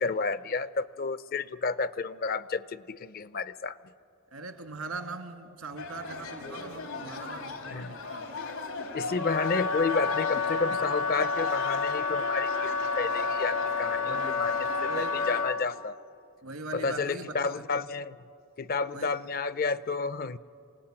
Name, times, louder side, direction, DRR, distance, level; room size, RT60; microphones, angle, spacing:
voice 1, 0.0-3.8 7.7-8.0 8.8-14.7 15.0-16.0 16.7-18.2 18.6-20.4, left 4 dB, 40° left, 16 dB, 0.5 m, -31 dB
voice 2, 4.3-8.4 10.7-10.8 14.1-15.2 16.4-17.5 18.9-19.2, right 3 dB, 80° right, 6 dB, 2.0 m, -41 dB
sound 1, 5.8-15.4, left 3 dB, 90° left, 3.1 m, -37 dB
Wind instrument woodwind instrument, 9.2-15.7, left 4 dB, 65° left, 1.0 m, -30 dB
27.5 x 18.0 x 8.8 m, 2.6 s
head